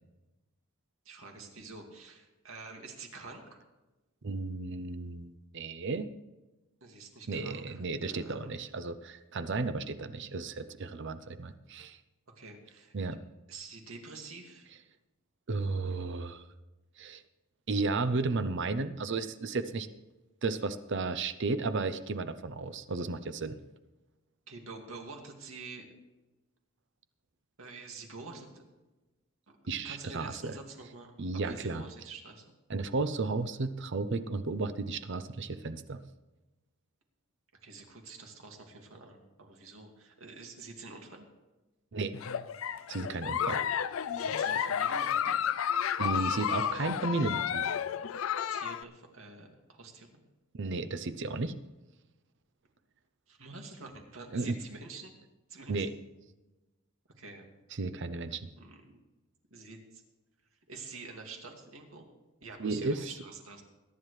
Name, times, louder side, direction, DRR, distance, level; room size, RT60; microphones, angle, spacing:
voice 1, 1.1-3.6 6.8-8.6 12.4-12.9 13.5-14.7 24.5-25.9 27.6-28.6 29.8-32.5 37.6-41.3 44.1-45.4 46.5-46.9 48.5-50.1 53.3-55.1 55.5-55.9 57.2-57.4 58.6-59.0 59.5-60.0 60.7-62.1 62.4-63.6, right 3 dB, 90° right, 2 dB, 2.2 m, -47 dB
voice 2, 4.2-6.1 7.3-12.0 12.9-13.2 15.5-16.4 17.0-17.2 17.7-19.9 20.4-23.6 29.7-30.5 31.2-31.8 32.7-36.0 41.9-42.1 42.9-43.6 46.0-47.6 50.5-51.5 54.3-54.6 55.7-55.9 57.8-58.5 62.6-63.1, right 3 dB, 60° right, 12 dB, 0.6 m, -33 dB
Giggle, 42.1-48.8, left 8 dB, 75° left, 0.4 m, -31 dB
21.5 x 10.5 x 3.2 m, 1.1 s
head